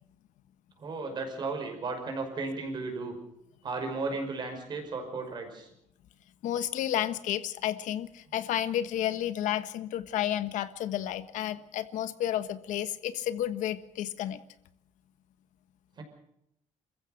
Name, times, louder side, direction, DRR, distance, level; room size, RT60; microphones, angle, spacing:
voice 1, 0.8-3.2 3.6-5.7 16.0-16.1, right 3 dB, 35° right, 4 dB, 5.4 m, -35 dB
voice 2, 6.4-14.4, left 11 dB, 85° left, 12 dB, 1.3 m, -31 dB
27.5 x 15.0 x 6.6 m, 0.78 s
cardioid pair, 170°, 13 cm